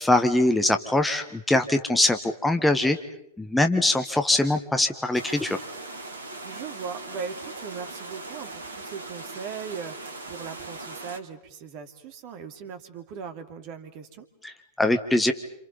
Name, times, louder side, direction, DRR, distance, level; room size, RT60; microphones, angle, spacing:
voice 1, 0.0-3.0 3.4-5.6 14.4-15.3, left 2 dB, 5° left, 6 dB, 1.6 m, -22 dB
sound 1, 5.1-11.2, right 2 dB, 75° right, 1.9 m, -39 dB
voice 2, 6.4-14.3, right 6 dB, 45° right, 8 dB, 2.7 m, -39 dB
29.0 x 27.5 x 5.5 m, 0.75 s
figure-of-eight pair, 90°, 0 cm